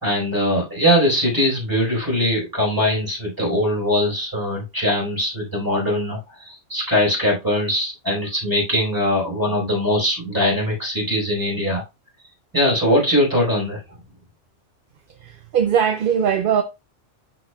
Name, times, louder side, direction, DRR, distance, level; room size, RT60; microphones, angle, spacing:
voice 1, 0.0-11.8 12.5-13.8, left 1 dB, 15° right, 4.3 m, -21 dB
voice 2, 15.2-16.6, right 8 dB, 55° right, 0.7 m, -20 dB
12.0 x 4.2 x 2.3 m
omnidirectional pair, 1.3 m